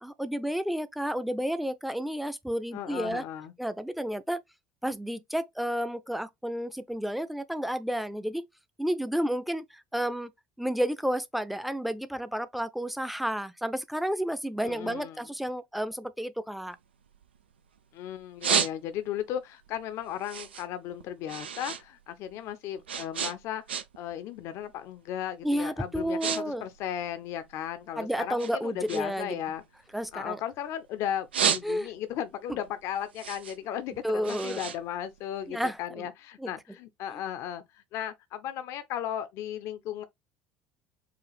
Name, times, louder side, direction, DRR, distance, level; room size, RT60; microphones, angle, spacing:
voice 1, 0.0-3.2 3.6-4.4 4.8-8.5 8.8-10.3 10.6-16.8 25.4-26.6 28.0-29.4 29.9-30.4 31.6-31.9 34.0-34.6 35.5-36.1 36.4-36.5, equal, ahead, 0.6 m, -31 dB
voice 2, 2.7-3.5 14.6-15.2 17.9-23.6 24.0-29.6 30.1-40.0, left 10 dB, 60° left, 0.7 m, -36 dB
sound 1, 16.7-17.8 18.2-19.2 19.6-21.8 22.1-24.1 24.4-24.8 25.4-25.6 25.9-26.4 26.7-27.9 28.4-30.7 31.1-32.1 32.5-35.7, right 7 dB, 85° right, 0.5 m, -32 dB
4.8 x 2.4 x 3.3 m
hypercardioid pair, 60°, 6 cm